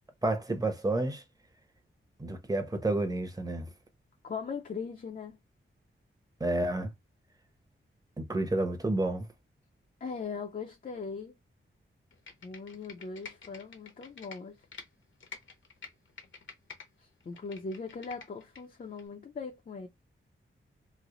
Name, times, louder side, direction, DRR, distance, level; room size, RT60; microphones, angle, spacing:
voice 1, 0.2-1.2 2.2-3.7 6.4-6.9 8.2-9.3, right 2 dB, 15° right, 0.8 m, -30 dB
voice 2, 4.2-5.4 10.0-11.3 12.4-14.5 17.0-19.9, left 5 dB, 40° left, 0.5 m, -40 dB
Computer keyboard, 12.1-14.9 15.2-16.9 17.2-18.6 19.0-19.1, left 5 dB, 65° left, 0.9 m, -48 dB
3.2 x 2.0 x 3.7 m
wide cardioid pair, 100°, 21 cm